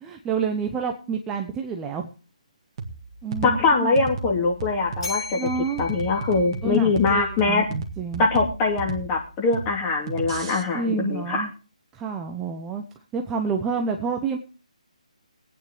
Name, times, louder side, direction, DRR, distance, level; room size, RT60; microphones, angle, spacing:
voice 1, 0.0-2.1 3.2-3.9 5.3-5.9 6.6-8.2 10.7-11.5 11.9-12.8 13.1-14.4, right 5 dB, 10° right, 3 dB, 0.8 m, -28 dB
sound 1, 2.8-10.6, right 4 dB, 35° right, 1.8 m, -34 dB
voice 2, 3.4-5.4 5.8-7.6 8.2-11.4, left 3 dB, 20° left, 0 dB, 3.1 m, -22 dB
Bell, 5.0-7.2, left 4 dB, 45° left, 6.6 m, -37 dB
22.5 x 9.2 x 3.3 m, 0.36 s
figure-of-eight pair, 150°, 4 cm